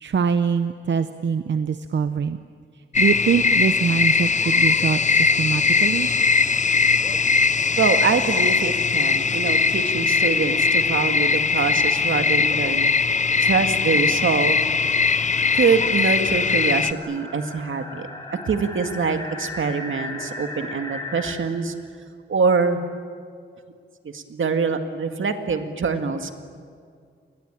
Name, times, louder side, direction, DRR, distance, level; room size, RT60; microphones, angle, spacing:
voice 1, 0.0-2.4 3.0-6.1, right 6 dB, 65° right, 10 dB, 0.8 m, -23 dB
sound 1, 2.9-16.9, left 5 dB, 40° left, 0.6 m, -20 dB
sound 2, 6.4-21.3, left 2 dB, 20° left, 4.3 m, -40 dB
voice 2, 7.8-12.9 13.3-14.6 15.5-21.7 22.3-22.8 24.0-26.3, right 5 dB, 85° right, 7 dB, 2.1 m, -24 dB
29.0 x 21.5 x 9.0 m, 2.1 s
wide cardioid pair, 155°, 20 cm